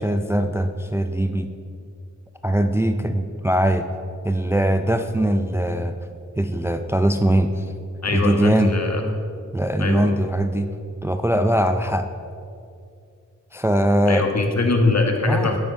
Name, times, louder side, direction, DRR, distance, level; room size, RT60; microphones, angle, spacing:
voice 1, 0.0-1.5 2.4-3.9 4.2-5.9 6.4-7.6 8.1-8.8 9.5-10.7 11.0-12.1 13.5-14.2 15.3-15.6, right 1 dB, 10° right, 8 dB, 0.4 m, -21 dB
voice 2, 8.0-9.0 9.8-10.1 14.1-15.6, left 3 dB, 55° left, 3 dB, 1.4 m, -22 dB
9.2 x 9.0 x 5.3 m, 2.4 s
wide cardioid pair, 70°, 32 cm